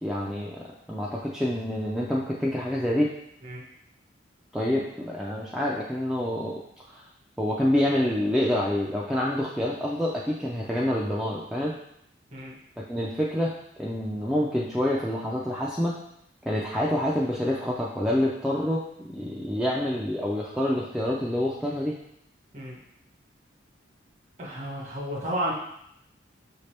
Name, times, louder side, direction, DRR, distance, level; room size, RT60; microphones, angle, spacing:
voice 1, 0.0-3.1 4.5-6.6 6.9-7.1 7.4-11.8 12.8-13.5 13.8-15.9 16.4-22.0, left 1 dB, 5° right, -4 dB, 0.3 m, -27 dB
voice 2, 24.4-25.5, right 1 dB, 35° right, -3 dB, 1.2 m, -32 dB
5.8 x 2.8 x 3.3 m, 0.75 s
head